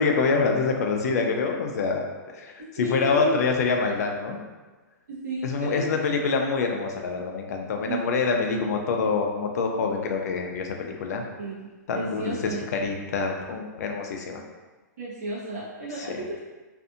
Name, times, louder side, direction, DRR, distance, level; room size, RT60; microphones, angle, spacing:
voice 1, 0.0-2.0 2.3-4.4 5.4-11.2 11.9-14.4 16.1-16.2, left 4 dB, 60° left, 2 dB, 0.4 m, -26 dB
voice 2, 2.8-3.4 5.1-6.0 7.9-8.0 11.4-11.6 11.9-12.6 15.0-16.4, right 1 dB, 65° right, -7 dB, 0.9 m, -33 dB
2.6 x 2.5 x 2.4 m, 1.2 s
hypercardioid pair, 155°, 10 cm